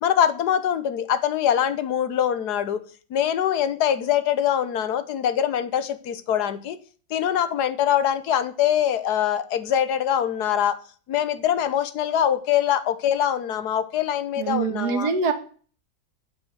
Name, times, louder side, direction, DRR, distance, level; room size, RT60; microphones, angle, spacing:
voice 1, 0.0-2.8 3.1-6.8 7.1-10.8 11.1-15.1, left 10 dB, 65° left, 12 dB, 1.3 m, -23 dB
voice 2, 14.4-15.3, right 5 dB, 55° right, 8 dB, 1.7 m, -24 dB
8.9 x 6.0 x 7.9 m, 0.42 s
omnidirectional pair, 2.1 m